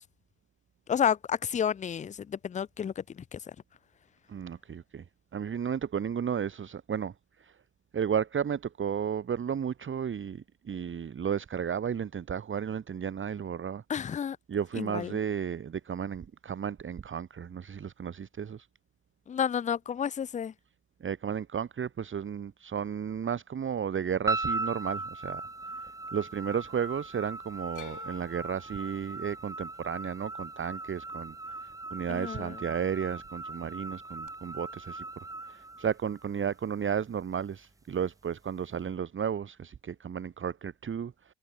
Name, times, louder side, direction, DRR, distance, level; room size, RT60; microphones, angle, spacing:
voice 1, 0.9-3.4 13.9-14.4 14.8-15.2 19.3-20.5 32.1-32.6, left 8 dB, 20° left, 0.5 m, -31 dB
voice 2, 4.3-5.0 5.3-7.6 7.9-13.8 14.5-18.7 21.0-25.5 26.1-31.3 31.6-35.0 35.5-41.3, right 7 dB, 35° right, 1.4 m, -33 dB
sound 1, 24.3-36.6, right 2 dB, 10° right, 1.0 m, -38 dB
sound 2, 27.7-31.9 32.2-32.9 34.3-34.4, left 11 dB, 55° left, 5.4 m, -53 dB
hypercardioid pair, 55°, 36 cm